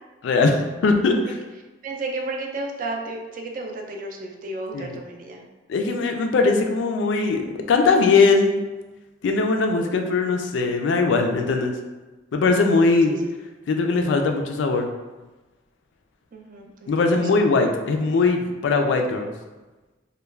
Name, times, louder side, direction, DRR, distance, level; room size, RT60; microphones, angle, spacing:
voice 1, 0.2-1.4 4.7-4.9 5.7-8.6 9.2-11.7 12.3-13.1 13.7-14.9 16.9-19.3, left 3 dB, 80° left, 4 dB, 0.3 m, -20 dB
voice 2, 1.8-5.4 13.1-13.3 16.3-17.2, right 2 dB, 45° right, 2 dB, 0.3 m, -33 dB
2.3 x 2.1 x 3.2 m, 1.2 s
head